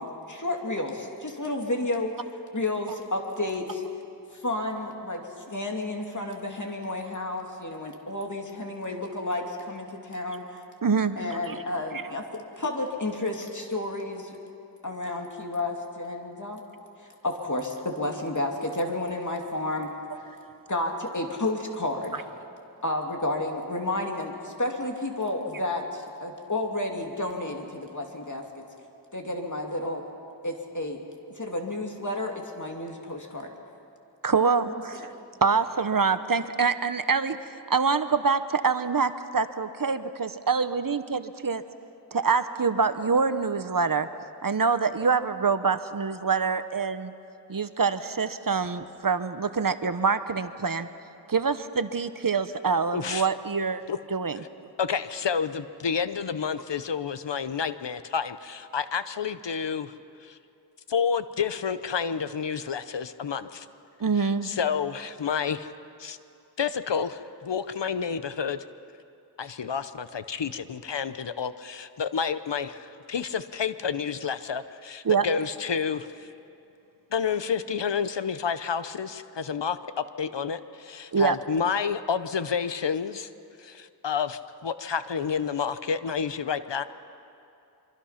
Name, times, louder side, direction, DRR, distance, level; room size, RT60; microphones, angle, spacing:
voice 1, 0.0-2.1 2.5-3.8 4.4-5.2 5.5-10.4 11.2-12.2 12.6-14.4 14.8-16.6 17.2-19.9 20.7-22.3 22.8-28.4 29.1-30.0 30.4-31.0 31.3-33.5 34.6-35.1, left 2 dB, 45° left, 1 dB, 2.6 m, -31 dB
voice 2, 10.8-11.5 34.2-35.1 35.4-37.4 37.7-41.6 42.1-44.1 44.4-47.1 47.5-50.9 51.3-53.8 54.1-54.4 64.0-64.5 75.0-75.2 81.1-81.4, right 5 dB, 50° right, 11 dB, 0.8 m, -25 dB
voice 3, 52.9-53.3 53.9-54.0 54.8-59.9 60.2-60.4 60.9-63.7 64.2-65.7 66.0-66.2 66.6-68.6 69.4-76.3 77.1-83.3 83.6-86.8, left 6 dB, 85° left, 12 dB, 0.8 m, -30 dB
24.5 x 24.5 x 5.8 m, 2.7 s
wide cardioid pair, 65°, 42 cm